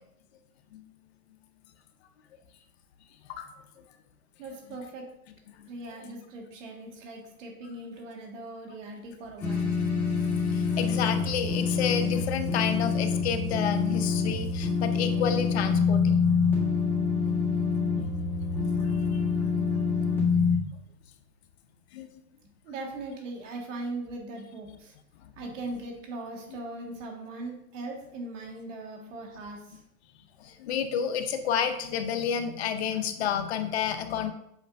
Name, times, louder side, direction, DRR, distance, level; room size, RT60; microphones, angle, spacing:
voice 1, 4.4-5.0 5.7-9.8 22.6-24.9 25.4-29.8, right 2 dB, 50° right, 1 dB, 1.9 m, -39 dB
sound 1, 9.4-20.6, left 5 dB, 5° left, 1.5 m, -26 dB
voice 2, 10.5-16.2 16.5-16.6 18.1-18.3 19.1-19.6 21.9-22.1 30.6-34.3, left 8 dB, 45° left, 8 dB, 0.7 m, -30 dB
8.1 x 4.9 x 2.6 m, 0.75 s
hypercardioid pair, 145°, 47 cm